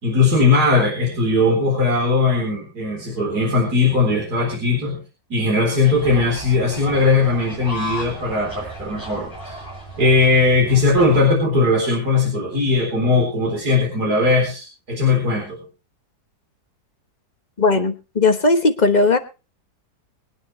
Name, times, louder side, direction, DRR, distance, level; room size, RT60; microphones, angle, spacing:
voice 1, 0.0-5.0 5.3-9.6 10.0-15.6, left 3 dB, 65° right, 0 dB, 4.5 m, -19 dB
sound 1, 5.8-11.2, equal, 10° left, 6.2 m, -35 dB
voice 2, 17.6-19.2, left 3 dB, 30° left, 8 dB, 1.1 m, -17 dB
22.5 x 9.6 x 3.2 m, 0.30 s
omnidirectional pair, 1.8 m